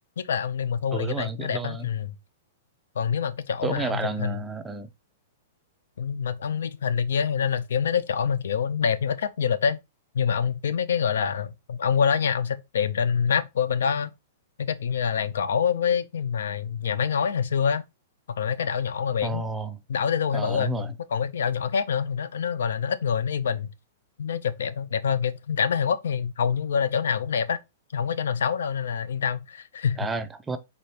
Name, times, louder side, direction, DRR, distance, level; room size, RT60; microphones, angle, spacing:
voice 1, 0.2-2.1 3.0-4.4 6.0-9.8 10.1-14.1 14.6-17.8 18.3-19.4 19.9-23.7 24.2-27.6 27.9-30.1, left 7 dB, 85° left, 0.5 m, -26 dB
voice 2, 0.9-1.9 3.6-4.9 19.2-19.8 20.3-20.9 30.0-30.6, right 3 dB, 10° right, 0.3 m, -31 dB
4.2 x 3.4 x 3.2 m
supercardioid pair, 170°, 0 cm